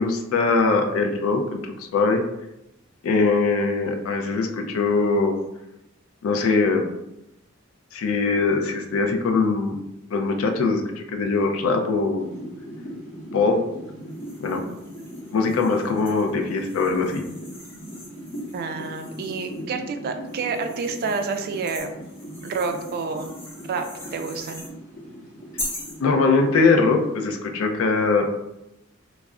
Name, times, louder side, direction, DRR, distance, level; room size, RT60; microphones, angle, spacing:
voice 1, 0.0-2.2 3.0-5.4 6.2-6.8 7.9-9.8 10.1-12.3 13.3-13.6 14.4-14.6 15.3-17.2 26.0-28.3, left 4 dB, 75° left, 4 dB, 0.4 m, -21 dB
sound 1, 12.2-27.3, equal, 35° left, 0.8 m, -39 dB
sound 2, 14.1-19.6 20.3-24.7 25.6-26.0, left 1 dB, 10° left, 0.5 m, -41 dB
voice 2, 18.5-21.9 22.4-23.4 23.7-23.9 24.1-24.6, right 4 dB, 45° right, 6 dB, 0.3 m, -29 dB
2.3 x 2.0 x 3.5 m, 0.90 s
head